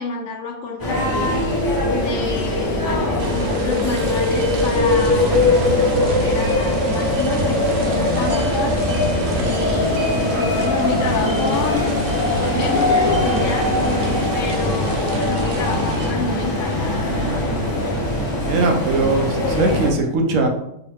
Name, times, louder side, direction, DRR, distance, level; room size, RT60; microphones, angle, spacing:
voice 1, 0.0-1.5 1.9-8.8 9.4-11.8 12.1-13.7 14.3-17.3 17.7-17.9, left 4 dB, 75° left, -3 dB, 0.9 m, -29 dB
sound 1, 0.8-19.9, left 2 dB, 25° left, 0.5 m, -20 dB
sound 2, 3.2-16.1, right 4 dB, 65° right, 0.6 m, -33 dB
voice 2, 18.5-20.5, right 3 dB, 80° right, 3 dB, 1.1 m, -20 dB
4.5 x 2.1 x 3.4 m, 0.80 s
omnidirectional pair, 1.4 m